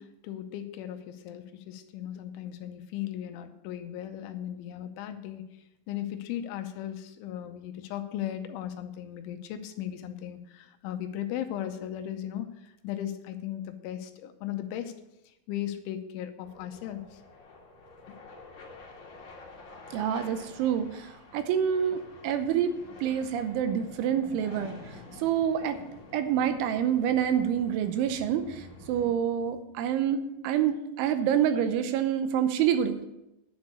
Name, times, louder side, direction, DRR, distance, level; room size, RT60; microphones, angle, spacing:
voice 1, 0.0-5.4 5.9-14.9 15.3-17.2 18.1-18.2, left 11 dB, 80° left, 7 dB, 3.1 m, -37 dB
sound 1, 16.4-29.1, left 3 dB, 50° left, 2.8 m, -49 dB
voice 2, 19.9-22.7 23.0-24.7 25.2-25.8 26.1-33.0, right 9 dB, 85° right, 9 dB, 3.1 m, -27 dB
10.5 x 6.2 x 8.2 m, 0.91 s
omnidirectional pair, 5.7 m